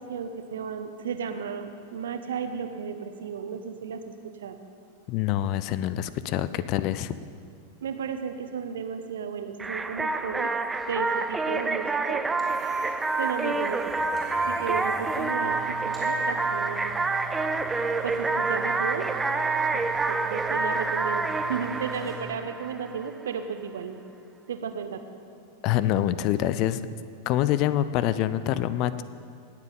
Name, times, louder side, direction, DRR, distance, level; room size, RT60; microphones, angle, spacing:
voice 1, 0.0-4.1 4.4-4.6 7.8-10.5 10.9-12.2 13.2-14.0 14.5-15.6 15.8-16.9 18.0-19.1 19.7-19.8 20.1-24.0 24.5-25.0, right 6 dB, 65° right, 8 dB, 0.9 m, -34 dB
voice 2, 5.1-7.2 25.6-26.8 27.3-29.0, left 12 dB, 40° left, 15 dB, 0.5 m, -25 dB
sound 1, 9.6-23.1, right 3 dB, 10° right, 0.5 m, -28 dB
sound 2, 12.4-22.2, right 3 dB, 5° left, 3.5 m, -42 dB
19.0 x 7.4 x 5.5 m, 2.4 s
figure-of-eight pair, 90°, 0 cm